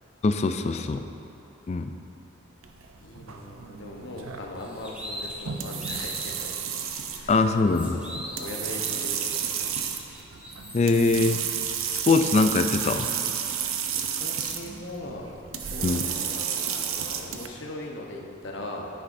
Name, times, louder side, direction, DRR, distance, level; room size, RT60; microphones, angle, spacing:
voice 1, 0.2-1.0 1.7-1.9 7.3-8.0 10.7-11.4 12.1-13.1 15.8-16.0, left 3 dB, 35° left, 8 dB, 0.3 m, -22 dB
sound 1, 2.6-17.5, right 8 dB, 85° right, 0.6 m, -32 dB
voice 2, 3.0-6.5 7.1-7.5 7.9-9.9 13.9-18.9, left 1 dB, 60° left, 0 dB, 1.0 m, -40 dB
sound 2, 4.6-6.4 6.8-6.9 7.3-10.9, equal, 5° right, 1.1 m, -41 dB
9.8 x 9.5 x 2.6 m, 2.9 s
head